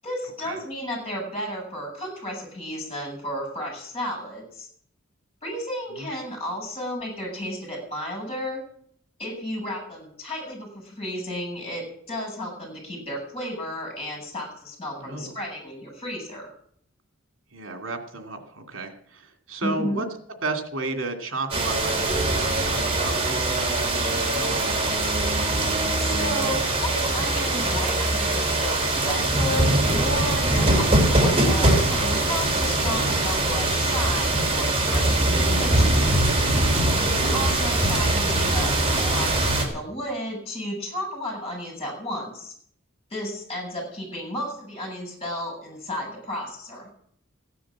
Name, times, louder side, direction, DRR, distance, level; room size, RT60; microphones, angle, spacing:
voice 1, 0.0-4.7 5.4-8.6 9.2-16.5 19.6-20.0 26.0-36.1 37.0-42.5 43.1-46.9, equal, 30° left, 1 dB, 7.9 m, -33 dB
voice 2, 15.0-15.3 17.5-20.1 20.4-24.8 36.7-37.0, right 3 dB, 80° right, 5 dB, 2.6 m, -33 dB
sound 1, 21.5-39.7, right 2 dB, 30° right, 3.3 m, -22 dB
15.5 x 10.0 x 7.5 m, 0.63 s
head